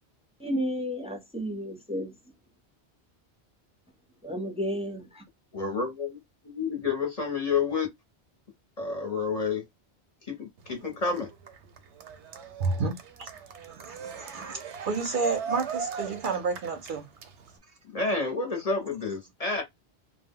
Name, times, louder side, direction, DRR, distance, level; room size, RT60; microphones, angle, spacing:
voice 1, 0.4-2.2 4.2-5.2, equal, 10° right, 0.4 m, -32 dB
voice 2, 5.5-7.9 8.8-9.6 10.3-11.3 17.9-19.6, left 4 dB, 40° left, 0.7 m, -29 dB
Cheering, 10.6-17.6, right 6 dB, 90° right, 0.9 m, -39 dB
voice 3, 12.6-12.9 13.2-13.3 13.7-17.1, right 4 dB, 60° right, 0.6 m, -30 dB
2.1 x 2.1 x 3.5 m
omnidirectional pair, 1.1 m